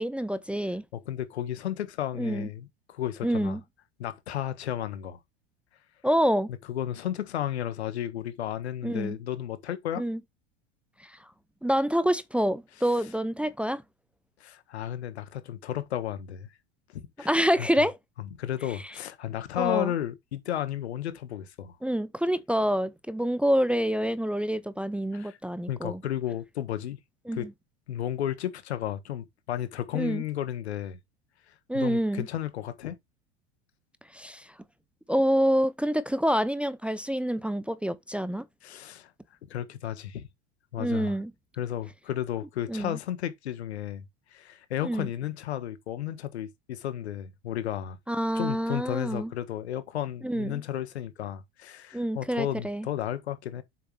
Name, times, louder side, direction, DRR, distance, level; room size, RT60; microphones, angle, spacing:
voice 1, 0.0-0.8 2.2-2.5 3.2-3.6 6.0-6.5 8.8-9.2 10.0-10.2 11.6-13.8 17.2-18.0 19.6-19.9 21.8-26.0 27.3-27.5 29.9-30.2 31.7-32.3 34.1-34.5 35.1-38.5 40.8-41.3 42.7-43.0 44.8-45.1 48.1-49.3 50.2-50.6 51.9-52.9, equal, 5° right, 0.6 m, -27 dB
voice 2, 0.9-3.6 4.0-5.2 6.7-10.0 14.4-16.5 16.9-17.3 17.6-17.7 18.4-21.8 25.1-25.4 25.7-27.0 27.3-27.5 27.9-31.0 31.7-33.0 38.6-39.1 39.5-40.3 40.7-41.2 41.6-44.0 44.3-48.0 48.3-53.6, left 11 dB, 85° left, 1.5 m, -33 dB
7.7 x 6.3 x 3.2 m
hypercardioid pair, 95°, 32 cm